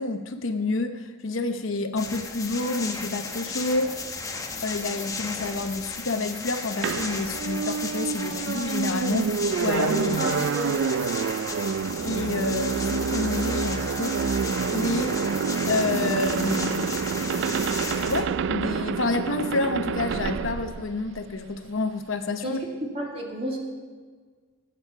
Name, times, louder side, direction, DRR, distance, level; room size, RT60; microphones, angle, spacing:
voice 1, 0.0-4.0 4.6-9.3 9.6-10.3 12.0-15.3 15.7-17.1 18.0-22.6, left 3 dB, 65° left, 7 dB, 0.9 m, -29 dB
sound 1, 2.0-18.2, left 4 dB, 15° left, 1.0 m, -35 dB
sound 2, 6.8-21.6, right 6 dB, 60° right, 0.3 m, -28 dB
voice 2, 10.2-10.8 22.4-23.6, equal, 30° right, 0 dB, 2.2 m, -31 dB
17.5 x 8.5 x 5.9 m, 1.5 s
head